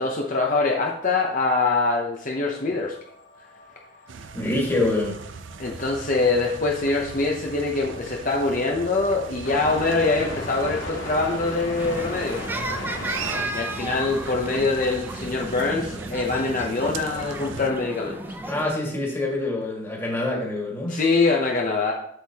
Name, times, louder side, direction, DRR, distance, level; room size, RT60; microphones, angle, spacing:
voice 1, 0.0-2.9 5.6-12.6 13.5-18.2 20.9-21.9, left 3 dB, 45° left, -1 dB, 0.8 m, -24 dB
sound 1, 2.5-14.3, left 2 dB, 85° left, 2.2 m, -38 dB
sound 2, 4.1-17.7, right 5 dB, 80° right, 0.5 m, -39 dB
voice 2, 4.3-5.2 18.5-21.0, left 2 dB, 15° left, -2 dB, 1.8 m, -25 dB
sound 3, 11.8-18.7, right 1 dB, 10° right, 0.5 m, -34 dB
8.0 x 6.7 x 2.9 m, 0.69 s
head